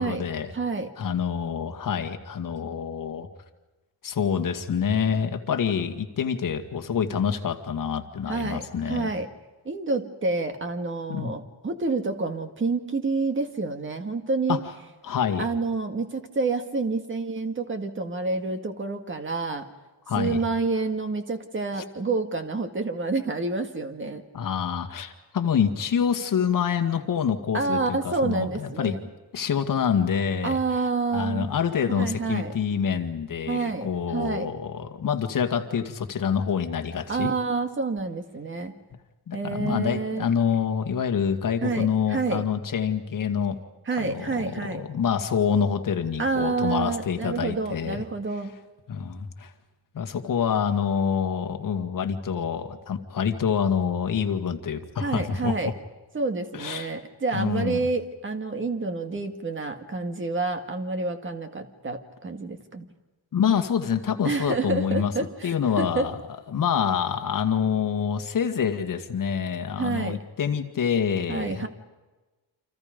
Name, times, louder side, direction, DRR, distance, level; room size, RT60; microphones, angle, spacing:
voice 1, 0.0-0.5 1.0-3.3 4.0-9.1 11.1-11.3 14.5-14.6 15.0-15.5 20.1-20.4 24.3-28.9 29.3-30.6 31.1-37.3 39.3-43.6 43.9-48.0 48.9-49.5 49.9-55.7 56.5-57.0 57.3-57.9 63.3-65.1 65.4-66.2 66.5-71.7, left 7 dB, 45° left, 6 dB, 2.0 m, -26 dB
voice 2, 0.5-0.9 8.3-9.3 9.7-14.6 15.4-19.7 20.2-24.2 27.5-29.1 30.4-31.5 31.9-32.5 33.5-34.5 37.1-38.8 39.3-40.3 41.6-42.4 43.9-44.8 46.2-48.6 55.0-55.7 56.1-62.9 64.2-66.2 69.8-70.2 71.3-71.7, right 3 dB, 25° right, 7 dB, 1.9 m, -28 dB
29.5 x 27.0 x 5.3 m, 1.2 s
wide cardioid pair, 175°, 43 cm